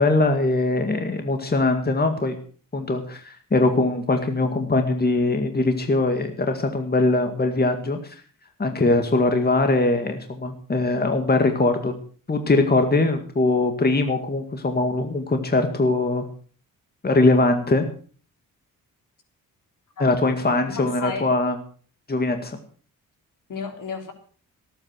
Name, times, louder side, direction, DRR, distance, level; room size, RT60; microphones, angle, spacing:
voice 1, 0.0-2.4 2.7-8.2 8.6-11.9 12.3-16.3 17.0-17.8 20.0-21.6 22.1-22.6, left 2 dB, 25° left, 6 dB, 2.1 m, -21 dB
voice 2, 20.7-21.3 23.5-24.1, left 5 dB, 65° left, 5 dB, 3.7 m, -33 dB
17.5 x 8.9 x 6.4 m, 0.43 s
cardioid pair, 85°, 35 cm